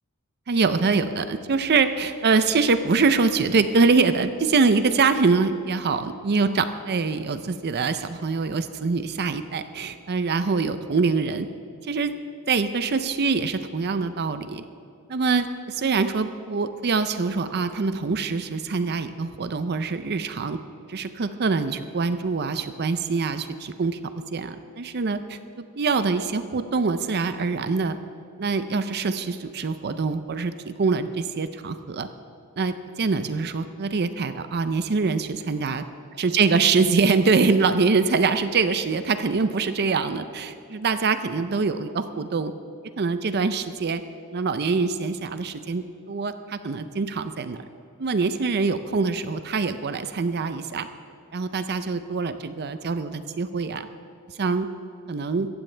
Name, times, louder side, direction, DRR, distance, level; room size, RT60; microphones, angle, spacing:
voice 1, 0.5-11.5 11.8-12.1 12.5-14.6 15.1-20.6 20.9-24.0 24.3-25.4 25.8-28.0 28.4-32.1 32.6-35.8 36.2-42.5 43.0-44.0 44.3-47.6 48.0-50.9 51.3-53.9 54.4-54.7 55.1-55.5, right 4 dB, 50° right, 11 dB, 0.5 m, -24 dB
16.0 x 15.0 x 3.3 m, 2.6 s
head